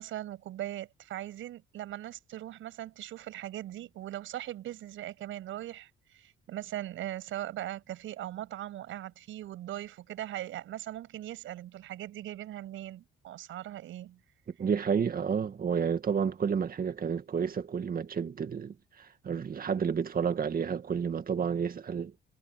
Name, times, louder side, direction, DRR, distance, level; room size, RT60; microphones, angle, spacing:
voice 1, 0.0-14.2, right 13 dB, 80° right, 7.8 m, -40 dB
voice 2, 14.5-22.1, right 7 dB, 45° right, 2.2 m, -30 dB
cardioid pair, 90°, 20 cm